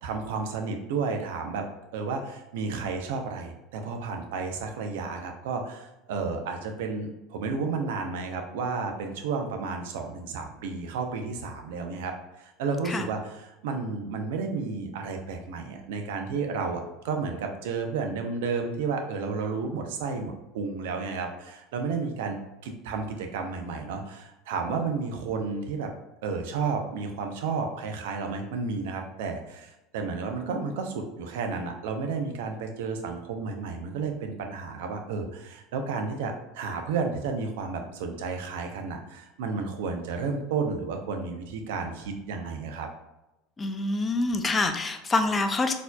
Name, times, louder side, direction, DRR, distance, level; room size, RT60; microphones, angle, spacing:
voice 1, 0.0-1.6 1.9-25.9 26.2-42.9, right 4 dB, 80° right, 4 dB, 0.6 m, -32 dB
voice 2, 43.6-45.7, left 3 dB, 20° left, 7 dB, 0.4 m, -26 dB
4.1 x 2.7 x 2.3 m, 0.94 s
supercardioid pair, 110°, 0 cm